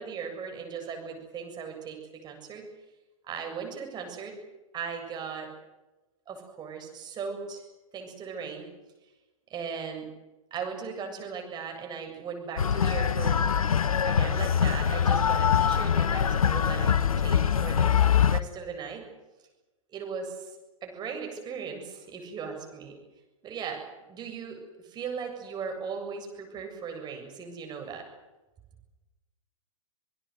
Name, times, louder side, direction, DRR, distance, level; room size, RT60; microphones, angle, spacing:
voice 1, 0.0-2.7 3.2-4.4 4.7-5.5 6.3-7.6 7.9-8.7 9.5-10.1 10.5-13.4 14.1-18.0 18.3-19.1 19.9-20.5 20.8-23.0 23.4-23.8 24.1-28.0, right 6 dB, 25° right, 3 dB, 7.5 m, -38 dB
sound 1, 12.6-18.4, left 8 dB, 75° left, 1.0 m, -23 dB
26.5 x 20.5 x 8.1 m, 1.1 s
hypercardioid pair, 115°, 18 cm